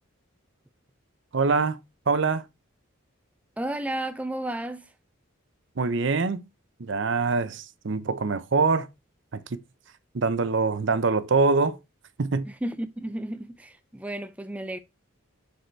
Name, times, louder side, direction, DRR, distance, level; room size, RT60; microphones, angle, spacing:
voice 1, 1.3-1.8 2.1-2.4 5.8-6.4 6.8-8.9 9.5-9.6 10.1-11.8 12.2-12.5, right 4 dB, 60° right, 0.6 m, -24 dB
voice 2, 3.6-4.9 12.5-14.8, right 1 dB, 5° right, 0.4 m, -33 dB
6.5 x 4.8 x 4.4 m
head